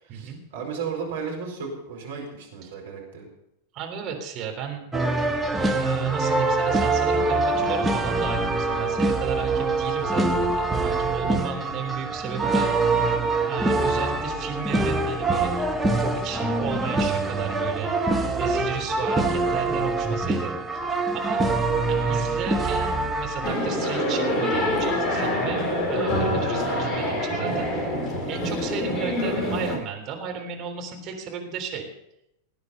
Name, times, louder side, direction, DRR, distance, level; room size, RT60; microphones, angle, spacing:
voice 1, 0.0-3.3, right 5 dB, 60° right, 0 dB, 4.4 m, -34 dB
voice 2, 3.7-4.8 5.7-12.7 13.5-15.7 15.9-17.9 18.4-20.8 21.1-21.4 21.9-27.8 28.3-31.9, right 7 dB, 35° right, 2 dB, 3.5 m, -34 dB
sound 1, 4.9-23.5, right 2 dB, 10° right, 1.5 m, -24 dB
sound 2, 23.4-29.8, left 1 dB, 15° left, 3.8 m, -25 dB
19.0 x 9.5 x 5.6 m, 0.82 s
figure-of-eight pair, 90°, 0 cm